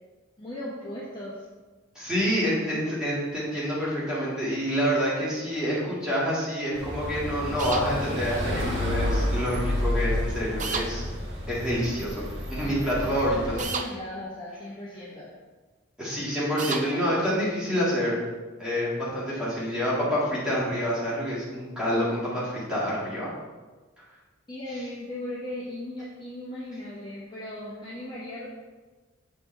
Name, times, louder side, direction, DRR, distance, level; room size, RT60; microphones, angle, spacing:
voice 1, 0.4-1.5 12.6-15.3 24.5-28.5, left 1 dB, 20° left, -7 dB, 1.0 m, -37 dB
voice 2, 2.0-11.1 11.5-13.4 16.0-18.2 18.6-23.3, equal, 5° right, -9 dB, 2.0 m, -27 dB
sound 1, 6.7-13.6, left 1 dB, 60° right, 1.4 m, -30 dB
sound 2, 7.6-7.9 10.6-10.9 13.6-13.9 16.6-16.9, right 5 dB, 35° right, 0.4 m, -30 dB
7.4 x 5.1 x 3.3 m, 1.3 s
head